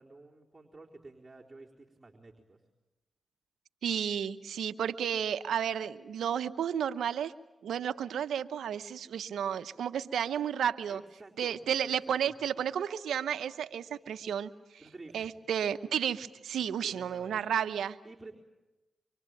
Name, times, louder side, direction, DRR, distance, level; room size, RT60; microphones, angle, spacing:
voice 1, 0.0-2.6 10.9-11.6 11.8-11.9 12.2-12.3 14.8-15.3 16.8-17.4 18.0-18.3, right 3 dB, 25° right, -3 dB, 4.0 m, -51 dB
voice 2, 3.8-7.3 7.6-11.0 11.4-14.5 15.1-18.0, right 8 dB, 90° right, 11 dB, 0.8 m, -32 dB
25.5 x 24.5 x 9.1 m, 1.0 s
cardioid pair, 45°, 0 cm